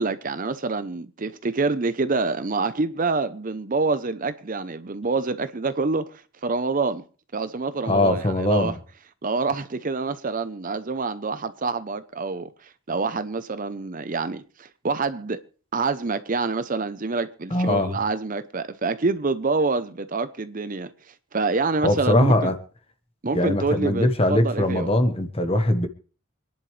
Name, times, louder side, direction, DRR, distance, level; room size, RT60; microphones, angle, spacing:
voice 1, 0.0-7.0 7.3-8.7 9.2-15.4 15.7-20.9 21.3-22.5 23.2-24.9, right 3 dB, 40° right, 0.7 m, -27 dB
voice 2, 7.8-8.7 17.5-18.0 21.8-22.6 23.3-25.9, left 1 dB, 25° left, 1.3 m, -21 dB
26.5 x 10.5 x 3.3 m
head